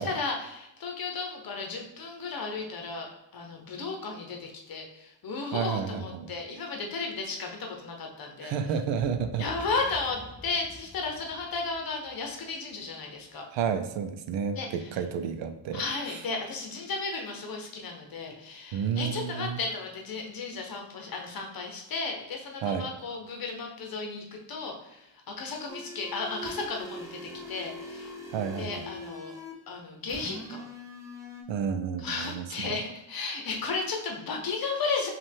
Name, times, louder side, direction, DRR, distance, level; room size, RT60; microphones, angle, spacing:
voice 1, 0.0-8.5 9.4-13.4 14.5-14.7 15.7-28.1 28.5-29.3 29.7-30.7 32.0-35.1, left 4 dB, 50° left, 2 dB, 0.9 m, -34 dB
voice 2, 5.5-6.3 8.4-9.4 13.5-15.8 16.1-16.2 18.7-19.6 22.6-22.9 28.3-28.9 31.5-32.8, right 7 dB, 80° right, 8 dB, 0.6 m, -31 dB
Boom, 8.9-13.2, left 2 dB, 15° left, 0.4 m, -49 dB
sound 1, 25.7-29.6 30.1-31.4, left 1 dB, 5° right, 0.8 m, -42 dB
5.2 x 2.5 x 3.5 m, 0.90 s
cardioid pair, 120°, 44 cm